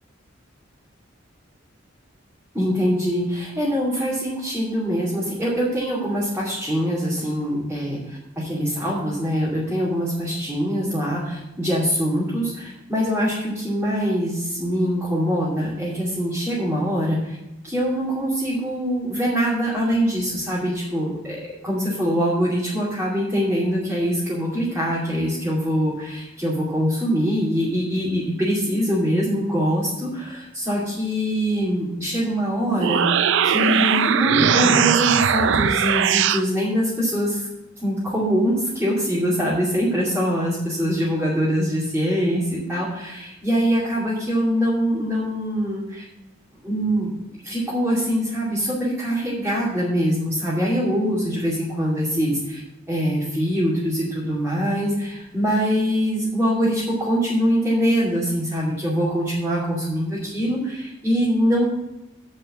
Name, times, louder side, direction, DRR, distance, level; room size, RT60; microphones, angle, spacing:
voice 1, 2.5-17.4 17.6-37.5 37.8-46.0 46.6-47.1 47.4-52.6 52.9-61.7, equal, 10° right, -9 dB, 2.6 m, -23 dB
sound 1, 32.6-36.4, right 7 dB, 65° right, 0.5 m, -19 dB
8.9 x 5.6 x 7.4 m, 0.96 s
head